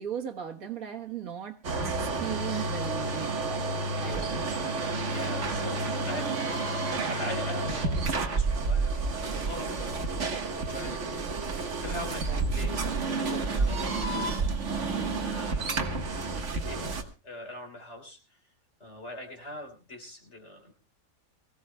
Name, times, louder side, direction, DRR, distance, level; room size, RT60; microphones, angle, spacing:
voice 1, 0.0-1.6 1.8-4.6, right 9 dB, 75° right, 1.8 m, -38 dB
sound 1, 1.6-17.0, right 3 dB, 55° right, 1.7 m, -30 dB
voice 2, 4.0-4.4 5.1-14.5 14.8-16.1 16.4-18.4 18.8-20.7, left 1 dB, 50° left, 3.6 m, -43 dB
24.5 x 16.0 x 2.2 m
omnidirectional pair, 1.5 m